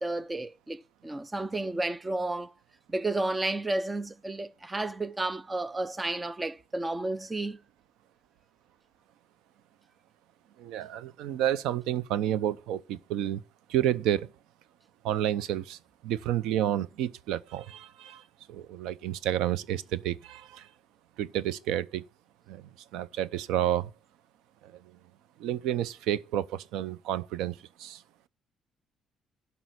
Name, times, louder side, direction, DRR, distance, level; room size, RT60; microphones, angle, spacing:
voice 1, 0.0-2.5 2.9-7.6, right 2 dB, 15° right, 0.6 m, -32 dB
voice 2, 10.6-13.4 13.7-14.3 15.0-18.2 18.5-20.7 21.2-22.0 22.5-23.9 24.6-24.7 25.4-28.0, right 11 dB, 90° right, 0.7 m, -30 dB
11.5 x 5.6 x 7.9 m
cardioid pair, 105°, 0 cm